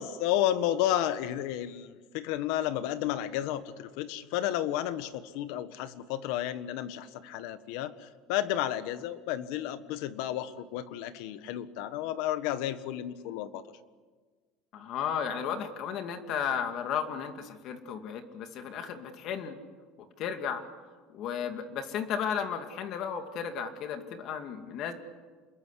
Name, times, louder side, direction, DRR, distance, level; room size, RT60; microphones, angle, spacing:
voice 1, 0.0-13.7, left 12 dB, 75° left, 12 dB, 1.5 m, -32 dB
voice 2, 14.7-19.6 20.2-20.6 21.1-24.9, left 7 dB, 50° left, 7 dB, 2.4 m, -34 dB
27.5 x 22.0 x 8.4 m, 1.4 s
cardioid pair, 145°, 0 cm